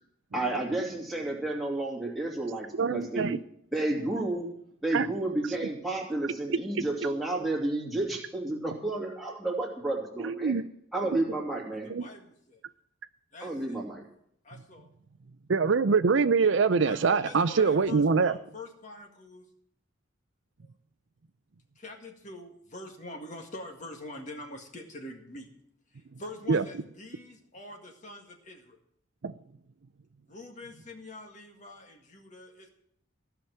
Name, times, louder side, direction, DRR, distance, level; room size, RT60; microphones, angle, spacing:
voice 1, 0.3-3.4 3.7-4.5 4.8-10.5 10.9-11.9 13.4-14.0, right 2 dB, ahead, 2.8 m, -31 dB
voice 2, 2.8-3.4 4.9-5.1 10.2-10.6 11.9-12.1 15.5-18.3 26.5-26.6 29.2-29.3, right 5 dB, 65° right, 0.5 m, -24 dB
voice 3, 11.8-12.6 13.3-13.9 14.4-14.9 16.8-19.5 21.8-25.5 25.9-28.8 30.3-32.7, left 2 dB, 35° left, 1.8 m, -45 dB
15.5 x 6.0 x 9.0 m
head